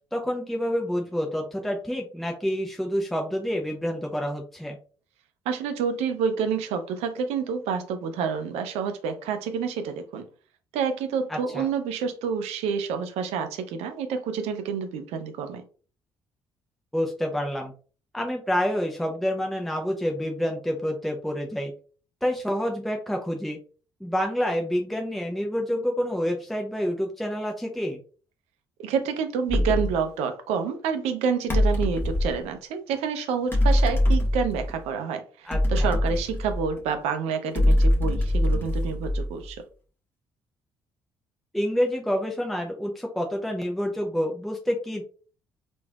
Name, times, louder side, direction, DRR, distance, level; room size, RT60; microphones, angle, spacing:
voice 1, 0.1-4.8 11.3-11.7 16.9-17.7 18.1-21.7 22.2-23.6 24.0-28.0 35.4-35.9 41.5-45.0, equal, ahead, 0.6 m, -28 dB
voice 2, 5.5-10.3 10.7-15.6 28.8-39.6, right 6 dB, 65° right, 0.5 m, -28 dB
sound 1, 29.5-30.0 31.5-32.4 33.5-34.8 35.5-36.9 37.5-39.5, left 1 dB, 20° left, 1.2 m, -23 dB
3.2 x 2.5 x 2.2 m
figure-of-eight pair, 50°, 12 cm